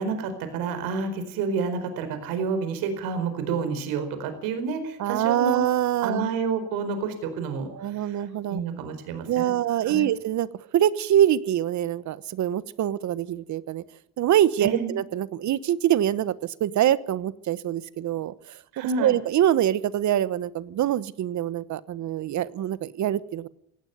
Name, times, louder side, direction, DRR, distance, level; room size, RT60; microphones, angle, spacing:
voice 1, 0.0-5.6 6.0-9.6 9.8-10.1 14.6-15.0 18.7-19.2, right 5 dB, 85° right, 9 dB, 4.6 m, -29 dB
voice 2, 5.0-6.2 7.7-8.6 9.3-13.8 14.2-18.3 19.0-23.5, right 11 dB, 55° right, 17 dB, 1.2 m, -24 dB
17.5 x 17.0 x 9.4 m, 0.73 s
supercardioid pair, 95°, 34 cm